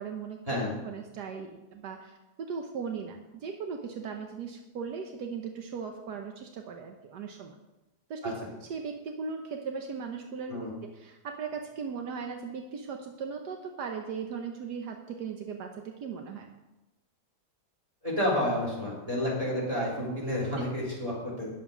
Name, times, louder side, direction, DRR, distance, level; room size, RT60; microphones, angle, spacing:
voice 1, 0.0-0.4 0.8-7.5 8.1-8.3 8.6-10.5 10.8-16.5, right 6 dB, 80° right, 4 dB, 1.4 m, -38 dB
voice 2, 18.0-21.5, left 1 dB, 20° right, -5 dB, 3.7 m, -30 dB
9.9 x 7.4 x 6.0 m, 1.0 s
omnidirectional pair, 1.8 m